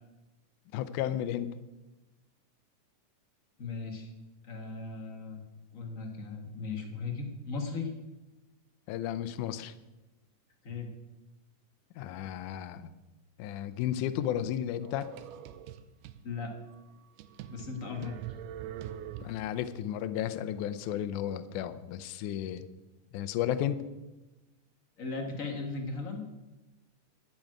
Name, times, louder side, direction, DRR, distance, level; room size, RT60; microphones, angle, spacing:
voice 1, 0.7-1.5 8.9-9.7 12.0-13.0 13.4-15.1 19.2-22.7 23.1-23.8, left 11 dB, 80° left, 13 dB, 2.1 m, -33 dB
voice 2, 3.6-4.1 4.4-5.4 5.7-7.9 10.6-10.9 16.2-16.5 17.5-18.2 25.0-26.2, left 4 dB, 45° left, 4 dB, 1.1 m, -37 dB
sound 1, 14.8-16.2 16.7-16.8 17.2-19.6, right 10 dB, 90° right, 2.2 m, -43 dB
12.5 x 6.3 x 9.0 m, 1.1 s
omnidirectional pair, 3.7 m